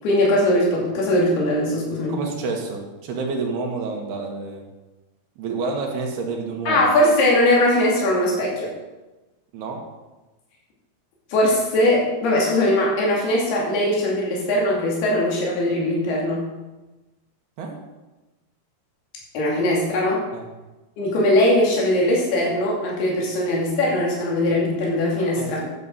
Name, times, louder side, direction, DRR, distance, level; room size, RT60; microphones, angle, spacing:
voice 1, 0.0-2.2 6.7-8.7 11.3-16.5 19.3-20.2 21.0-25.6, left 1 dB, 85° left, -3 dB, 4.5 m, -20 dB
voice 2, 2.1-4.6 5.4-6.9 9.5-9.8 17.6-17.8 20.3-20.5 25.4-25.7, right 4 dB, 85° right, 0 dB, 3.7 m, -29 dB
12.0 x 7.7 x 5.6 m, 1.1 s
omnidirectional pair, 4.5 m